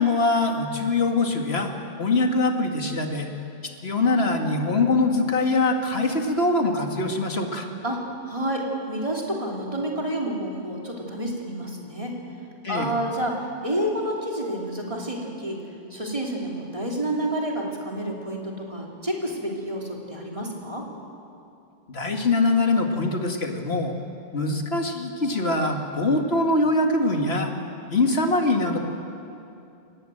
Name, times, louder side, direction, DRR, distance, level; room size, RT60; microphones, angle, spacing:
voice 1, 0.0-1.7 2.0-3.3 3.6-7.7 12.6-12.9 21.9-23.9 24.3-27.5 27.9-28.8, left 2 dB, 80° left, 3 dB, 2.3 m, -23 dB
voice 2, 7.8-12.1 12.7-15.6 15.9-20.8, right 1 dB, 30° right, -2 dB, 3.5 m, -29 dB
26.5 x 19.0 x 7.9 m, 2.6 s
omnidirectional pair, 1.0 m